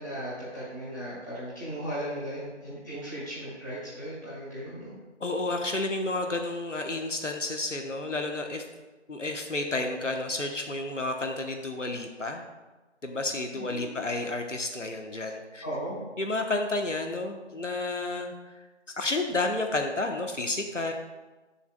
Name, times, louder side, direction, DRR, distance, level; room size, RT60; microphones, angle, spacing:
voice 1, 0.0-4.9 13.5-14.0 15.6-16.0, right 1 dB, 15° left, -12 dB, 2.4 m, -37 dB
voice 2, 5.2-8.6 9.1-12.4 13.0-15.6 16.2-18.5 19.0-20.9, left 2 dB, 85° left, 4 dB, 1.1 m, -31 dB
13.0 x 7.0 x 2.2 m, 1.2 s
figure-of-eight pair, 175°, 36 cm